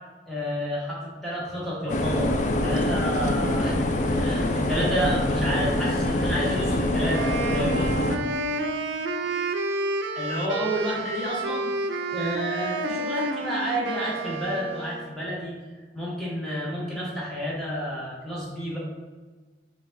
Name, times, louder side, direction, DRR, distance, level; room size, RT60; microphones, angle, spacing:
voice 1, 0.3-3.8 4.0-7.9 10.1-11.7 12.0-15.5 15.9-18.8, equal, ahead, -7 dB, 1.2 m, -30 dB
sound 1, 1.9-8.2, left 1 dB, 40° left, 0.3 m, -25 dB
Wind instrument woodwind instrument, 7.1-15.2, right 2 dB, 75° right, 0.4 m, -30 dB
5.0 x 2.4 x 3.8 m, 1.3 s
head